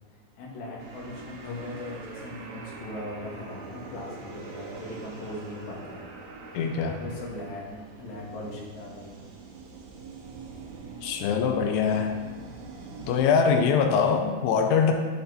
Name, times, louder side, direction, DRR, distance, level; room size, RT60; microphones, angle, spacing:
voice 1, 0.4-6.1 6.4-6.7 7.0-9.3, left 1 dB, 55° left, -4 dB, 2.4 m, -39 dB
sound 1, 0.8-13.2, right 4 dB, 80° right, 3.0 m, -44 dB
voice 2, 6.5-7.0 11.0-12.1 13.1-14.9, left 6 dB, 90° left, 4 dB, 2.7 m, -23 dB
11.5 x 4.3 x 4.0 m, 1.4 s
omnidirectional pair, 4.7 m